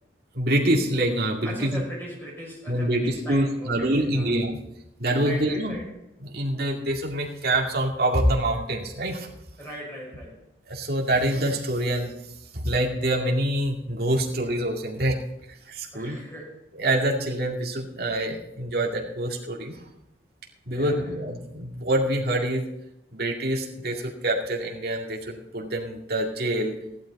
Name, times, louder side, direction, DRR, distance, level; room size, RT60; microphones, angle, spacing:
voice 1, 0.3-1.8 2.7-4.6 5.0-5.7 6.2-9.3 10.7-12.1 12.5-15.2 15.5-16.2 16.8-19.8 20.7-22.6 23.1-26.7, right 1 dB, 55° right, -1 dB, 2.2 m, -26 dB
voice 2, 1.4-4.3 5.2-5.9 9.6-10.4 15.9-16.6 20.7-21.2, equal, 10° left, -3 dB, 5.3 m, -39 dB
15.0 x 11.5 x 4.2 m, 0.84 s
head